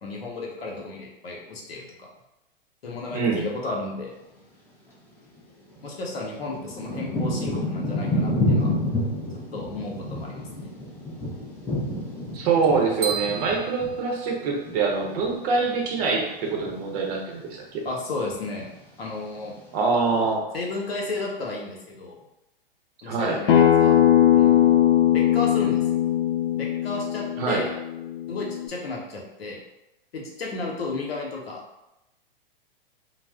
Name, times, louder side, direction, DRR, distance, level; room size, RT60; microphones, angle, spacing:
voice 1, 0.0-2.1 2.8-4.1 5.8-8.7 9.5-10.7 17.8-18.7 19.0-19.6 20.5-22.1 23.0-24.0 24.3-24.8 25.1-25.8 26.5-27.7 28.3-29.6 30.1-31.6, left 3 dB, 85° left, -1 dB, 0.9 m, -33 dB
voice 2, 3.1-3.4 12.3-17.8 19.7-20.5 23.0-23.4 27.4-27.6, right 4 dB, 40° right, 0 dB, 0.7 m, -24 dB
Thunder / Rain, 5.4-5.5 6.2-15.7 16.0-16.8 17.4-17.7 18.0-18.8 19.4-19.5, left 1 dB, 5° left, 0.4 m, -29 dB
sound 1, 13.0-14.9, right 7 dB, 90° right, 0.7 m, -34 dB
Acoustic guitar, 23.5-28.7, left 11 dB, 65° left, 0.5 m, -20 dB
2.4 x 2.0 x 3.4 m, 0.93 s
hypercardioid pair, 120°, 30 cm